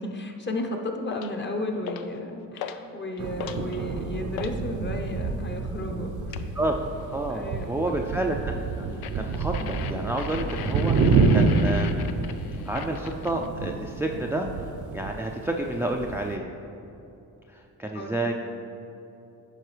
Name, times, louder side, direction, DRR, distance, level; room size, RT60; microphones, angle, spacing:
voice 1, 0.0-6.5 7.3-7.9 17.9-18.3, left 1 dB, 30° left, 3 dB, 0.9 m, -33 dB
sound 1, 1.1-1.4 1.9-2.2 2.6-2.9 3.2-4.6 6.3-6.6 9.0-13.5, left 8 dB, 85° left, 0.5 m, -38 dB
sound 2, 3.2-16.4, right 4 dB, 55° right, 0.6 m, -28 dB
voice 2, 7.1-8.5 8.8-11.9 12.7-14.5 14.9-16.5 17.5-18.3, right 1 dB, 5° right, 1 dB, 0.4 m, -30 dB
10.5 x 5.4 x 3.3 m, 2.9 s
cardioid pair, 85°, 36 cm